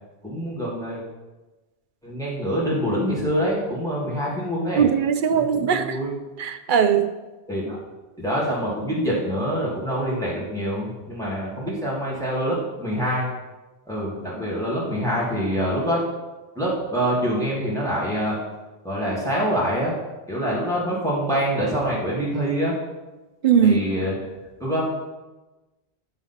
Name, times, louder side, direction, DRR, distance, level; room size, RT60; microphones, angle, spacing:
voice 1, 0.2-1.0 2.0-4.8 5.3-6.1 7.5-7.8 8.2-13.3 13.9-16.0 16.6-18.4 18.8-19.9 20.3-22.8 23.6-24.1 24.6-24.9, equal, 5° left, -7 dB, 2.1 m, -25 dB
voice 2, 4.8-6.0 6.4-7.1 23.4-23.8, right 7 dB, 60° right, 9 dB, 0.7 m, -19 dB
10.0 x 4.1 x 5.7 m, 1.1 s
omnidirectional pair, 1.1 m